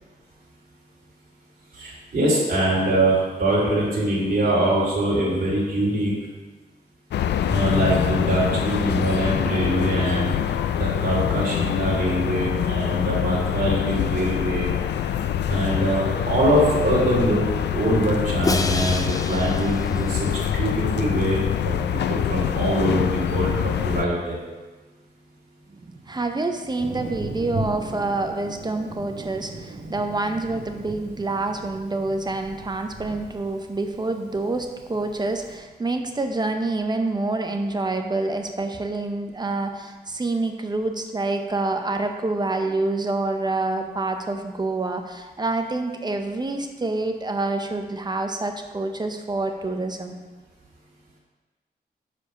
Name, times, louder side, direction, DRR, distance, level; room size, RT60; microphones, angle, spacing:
voice 1, 1.7-6.1 7.5-14.7 15.0-15.1 15.5-24.4, right 1 dB, 55° right, -7 dB, 2.6 m, -23 dB
sound 1, 7.1-24.0, left 9 dB, 85° left, 0.4 m, -25 dB
Crash cymbal, 18.4-20.6, left 3 dB, 20° left, 0.5 m, -29 dB
voice 2, 25.7-50.2, right 2 dB, 25° right, 5 dB, 0.7 m, -27 dB
Thunder, 26.8-35.5, right 1 dB, 75° right, 1.6 m, -37 dB
7.0 x 5.0 x 5.6 m, 1.3 s
wide cardioid pair, 105°, 17 cm